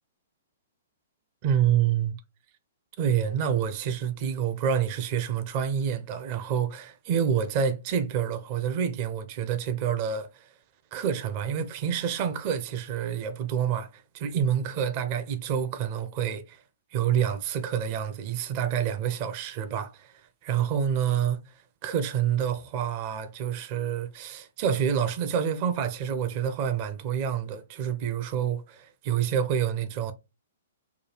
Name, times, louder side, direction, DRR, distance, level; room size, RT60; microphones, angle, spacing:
voice 1, 1.4-2.2 3.0-10.5 10.9-16.6 16.9-30.1, right 8 dB, 40° right, 0.6 m, -28 dB
4.6 x 2.3 x 3.2 m
figure-of-eight pair, 120°, 0 cm